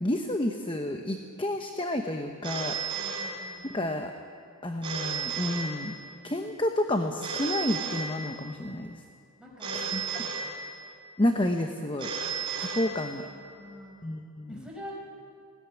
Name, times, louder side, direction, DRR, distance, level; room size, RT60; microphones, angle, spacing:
voice 1, 0.0-2.7 3.7-4.1 4.6-6.0 6.2-9.0 9.7-10.3 11.2-12.1 12.6-13.3 14.0-14.7, left 1 dB, 25° left, 5 dB, 0.9 m, -30 dB
Telephone, 2.4-3.9 4.8-6.3 7.2-8.7 9.6-11.1 12.0-13.5, right 5 dB, 25° right, 4.3 m, -34 dB
voice 2, 2.9-3.6 9.4-10.6 12.8-14.0 14.5-15.0, equal, 5° right, -4 dB, 5.1 m, -46 dB
20.0 x 17.0 x 9.6 m, 2.5 s
head